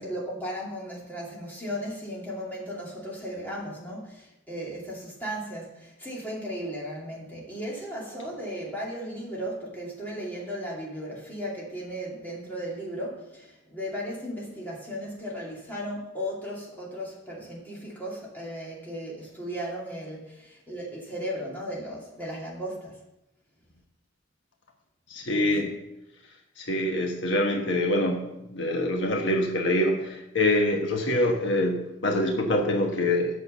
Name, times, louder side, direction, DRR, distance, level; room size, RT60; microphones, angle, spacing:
voice 1, 0.0-23.0 25.3-25.7, equal, 10° left, -5 dB, 2.6 m, -36 dB
voice 2, 25.1-25.7 26.6-33.4, left 1 dB, 65° left, 1 dB, 1.3 m, -25 dB
8.4 x 6.7 x 6.8 m, 0.89 s
head